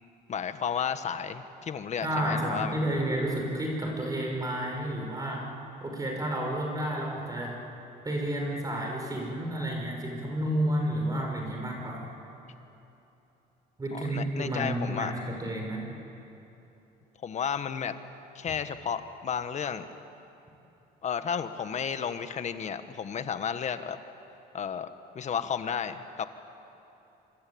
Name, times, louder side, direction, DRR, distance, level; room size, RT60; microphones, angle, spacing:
voice 1, 0.3-2.8 13.9-15.1 17.2-18.0 18.3-19.8 21.0-24.0 24.5-24.9 25.1-26.3, left 7 dB, 45° left, 10 dB, 1.5 m, -32 dB
voice 2, 2.0-5.5 5.8-7.6 8.0-12.1 13.8-15.8, right 1 dB, 20° right, 0 dB, 5.9 m, -31 dB
26.5 x 25.0 x 8.8 m, 3.0 s
cardioid pair, 110°, 17 cm